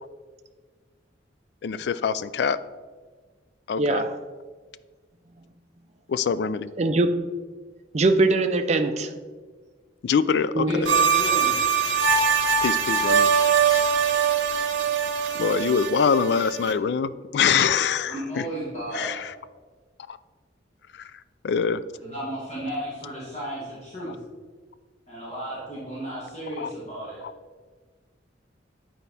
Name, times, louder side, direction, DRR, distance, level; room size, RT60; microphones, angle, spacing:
voice 1, 1.6-2.6 3.7-4.0 6.1-6.7 10.0-10.7 12.6-13.3 13.7-13.9 15.3-18.4 18.9-19.3 20.1-20.2 21.4-21.8 26.6-26.7, left 6 dB, 60° left, 15 dB, 0.3 m, -24 dB
voice 2, 3.8-4.2 6.8-7.2 7.9-9.1 10.5-11.0, right 2 dB, 35° right, 7 dB, 0.5 m, -22 dB
voice 3, 10.7-11.5 18.1-19.2 22.0-24.2 25.1-27.2, right 1 dB, 35° left, -8 dB, 1.9 m, -34 dB
sound 1, 10.8-16.7, right 6 dB, 85° right, 0.7 m, -22 dB
9.1 x 4.4 x 4.1 m, 1.4 s
head